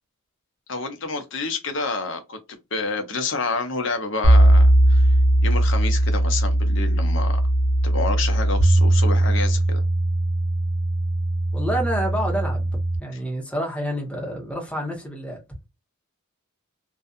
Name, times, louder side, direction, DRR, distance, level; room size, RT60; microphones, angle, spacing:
voice 1, 0.7-2.4 2.7-5.1 5.4-7.4 7.8-9.8, left 3 dB, 55° left, 0.7 m, -28 dB
sound 1, 4.2-13.0, right 1 dB, 85° right, 1.1 m, -19 dB
voice 2, 11.5-12.7 13.0-15.4, equal, 5° left, 0.9 m, -28 dB
2.6 x 2.3 x 2.3 m
head